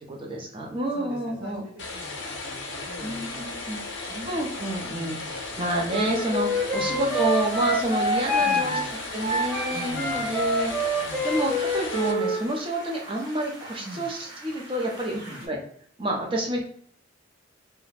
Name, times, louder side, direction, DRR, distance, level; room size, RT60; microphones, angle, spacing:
voice 1, 0.1-1.6 3.0-3.8 4.3-8.8 9.1-15.2 15.4-15.6 16.0-16.6, right 1 dB, 25° right, -1 dB, 0.6 m, -29 dB
voice 2, 0.9-3.5 4.0-4.3 4.9-5.6 6.7-7.2 8.4-8.9 9.7-10.4 10.9-11.3 13.8-14.1 15.1-15.4 16.2-16.4, equal, 65° right, -6 dB, 0.8 m, -42 dB
sound 1, 1.8-12.1, left 3 dB, 65° left, 0.6 m, -36 dB
Wind instrument woodwind instrument, 5.9-12.4, equal, ahead, 0.9 m, -26 dB
sound 2, 7.1-15.5, right 1 dB, 85° right, 1.2 m, -44 dB
2.4 x 2.1 x 3.2 m, 0.62 s
head